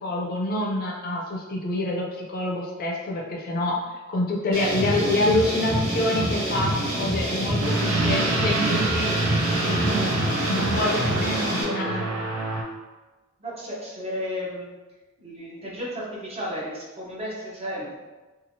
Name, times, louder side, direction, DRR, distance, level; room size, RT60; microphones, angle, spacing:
voice 1, 0.0-3.8 4.1-9.1 9.6-10.2 10.5-12.1, left 1 dB, 45° left, -1 dB, 0.4 m, -26 dB
sound 1, 4.5-11.6, right 1 dB, 60° right, 1.5 m, -27 dB
sound 2, 7.6-12.6, right 2 dB, 75° right, 0.5 m, -27 dB
voice 2, 10.9-11.3 11.8-11.9 13.4-14.7 15.2-18.0, equal, 30° right, -5 dB, 0.7 m, -34 dB
2.9 x 2.4 x 2.7 m, 1.2 s
head